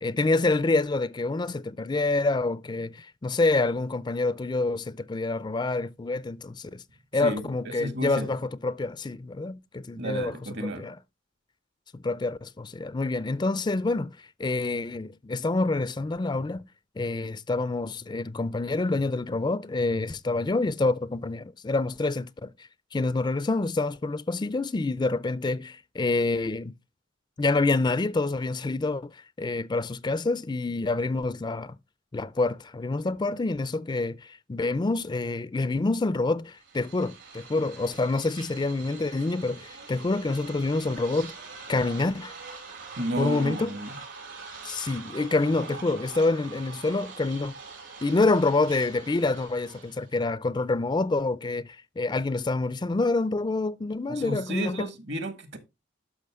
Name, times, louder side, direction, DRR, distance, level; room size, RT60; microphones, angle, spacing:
voice 1, 0.0-6.8 7.1-10.3 10.6-11.0 11.9-16.6 17.0-22.5 22.9-26.7 27.4-31.8 32.1-41.3 41.7-42.3 43.2-43.8 44.6-47.6 48.0-54.9, left 3 dB, 25° left, 0.4 m, -27 dB
voice 2, 7.2-8.3 10.0-10.9 43.0-43.9 54.1-55.6, right 1 dB, 65° right, 1.7 m, -32 dB
sound 1, 36.5-50.1, right 4 dB, 85° right, 5.3 m, -44 dB
12.0 x 5.7 x 3.5 m
head